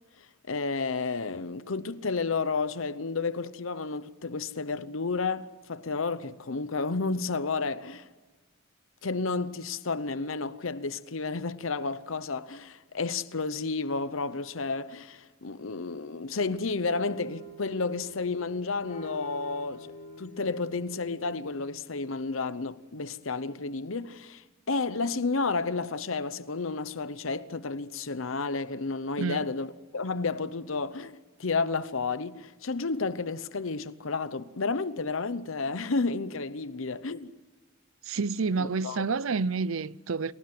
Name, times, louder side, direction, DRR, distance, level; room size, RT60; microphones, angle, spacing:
voice 1, 0.5-8.1 9.0-19.9 20.2-37.3 38.6-39.1, left 4 dB, 70° left, 0.9 m, -31 dB
sound 1, 16.3-21.6, right 2 dB, 35° left, 7.5 m, -47 dB
voice 2, 29.2-29.5 38.0-40.3, right 4 dB, 75° right, 0.7 m, -29 dB
28.5 x 18.5 x 7.8 m
head